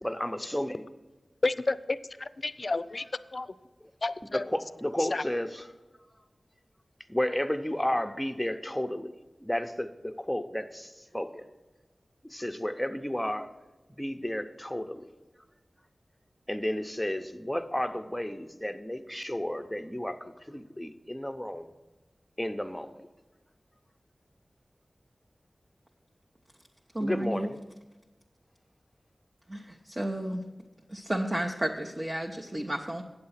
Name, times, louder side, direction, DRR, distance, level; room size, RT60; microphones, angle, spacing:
voice 1, 0.0-0.8 4.5-5.7 7.1-9.1 9.4-11.4 12.3-13.5 14.0-15.0 16.5-20.2 20.5-21.7 22.4-22.9 27.0-27.6, left 1 dB, 5° left, 7 dB, 0.7 m, -32 dB
voice 2, 1.4-3.0 3.3-3.5 4.0-4.5 5.0-5.2, left 3 dB, 55° left, 15 dB, 0.4 m, -31 dB
voice 3, 26.9-27.5 29.5-29.6 30.0-30.4 30.9-33.0, right 1 dB, 30° right, 0 dB, 0.7 m, -31 dB
8.9 x 7.5 x 5.7 m, 1.2 s
wide cardioid pair, 55°, 0 cm